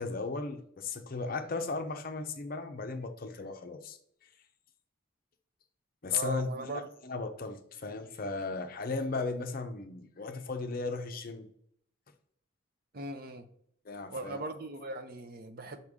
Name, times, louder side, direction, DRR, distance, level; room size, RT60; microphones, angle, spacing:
voice 1, 0.0-4.0 6.0-11.5 13.9-14.4, left 4 dB, 45° left, 7 dB, 0.6 m, -36 dB
voice 2, 6.1-6.9 12.9-13.5 14.1-15.8, right 2 dB, 45° right, 7 dB, 0.6 m, -39 dB
6.5 x 4.2 x 3.6 m, 0.68 s
head